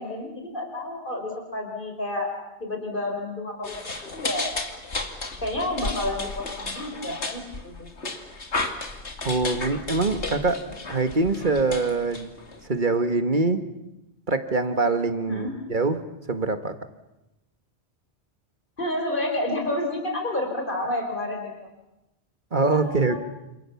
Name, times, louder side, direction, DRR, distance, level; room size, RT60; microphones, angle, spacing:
voice 1, 0.0-2.3 2.6-4.5 5.4-7.9 15.3-15.5 18.8-21.5 22.7-23.2, left 1 dB, 50° left, 2 dB, 5.1 m, -30 dB
sound 1, 3.6-12.7, left 3 dB, 85° left, 2.7 m, -33 dB
voice 2, 9.2-12.3 12.6-13.6 14.3-16.0 16.3-16.8 22.5-23.2, right 3 dB, 45° right, 9 dB, 1.8 m, -24 dB
29.0 x 27.5 x 7.2 m, 0.95 s
omnidirectional pair, 1.1 m